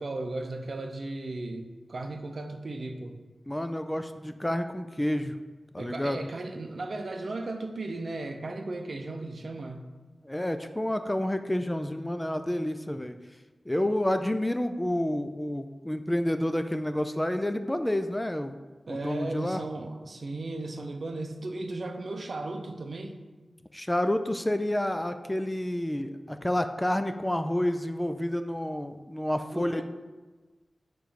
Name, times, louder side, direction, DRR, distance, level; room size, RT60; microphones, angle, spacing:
voice 1, 0.0-3.1 5.8-9.9 18.9-23.2 29.5-29.8, right 2 dB, 60° right, 6 dB, 0.6 m, -36 dB
voice 2, 3.5-5.4 5.7-6.3 10.2-13.2 13.7-18.5 18.9-19.6 23.7-29.8, left 1 dB, 10° left, 8 dB, 0.3 m, -29 dB
6.8 x 3.1 x 5.1 m, 1.3 s
wide cardioid pair, 95°, 0 cm